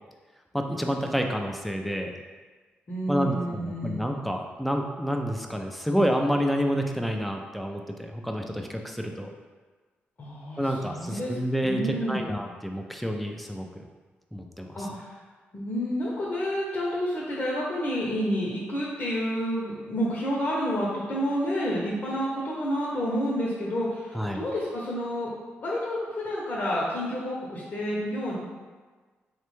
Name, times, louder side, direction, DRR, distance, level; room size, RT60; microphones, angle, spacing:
voice 1, 0.5-2.1 3.1-9.3 10.6-13.7 14.3-14.9 24.1-24.4, equal, ahead, 3 dB, 0.3 m, -29 dB
voice 2, 2.9-4.0 10.2-12.2 14.7-15.1 15.5-25.3 25.6-28.4, equal, 50° left, -5 dB, 0.7 m, -29 dB
3.2 x 2.1 x 3.1 m, 1.4 s
cardioid pair, 70°, 4 cm